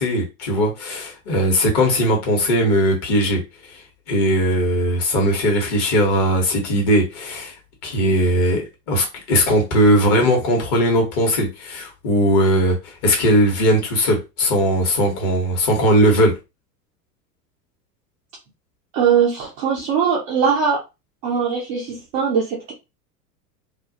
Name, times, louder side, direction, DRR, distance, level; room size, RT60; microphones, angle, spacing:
voice 1, 0.0-3.4 3.7-7.5 7.8-8.6 8.9-16.3, equal, 40° left, 1.1 m, -19 dB
voice 2, 18.9-20.8 21.2-22.7, right 6 dB, 25° right, 0.3 m, -20 dB
2.4 x 2.1 x 2.6 m
figure-of-eight pair, 90°, 48 cm